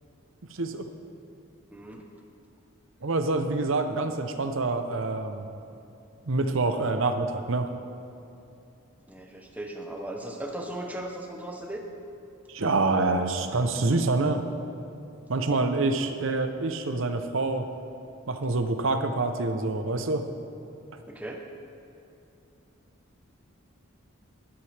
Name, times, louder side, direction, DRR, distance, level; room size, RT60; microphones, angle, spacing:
voice 1, 0.5-0.9 3.0-5.5 6.3-7.7 12.5-14.5 15.3-17.7 18.3-20.2, right 3 dB, 70° right, 7 dB, 0.7 m, -26 dB
voice 2, 1.7-2.0 9.1-11.8 21.1-21.4, right 1 dB, 5° right, 2 dB, 0.8 m, -37 dB
12.0 x 11.5 x 3.4 m, 2.7 s
head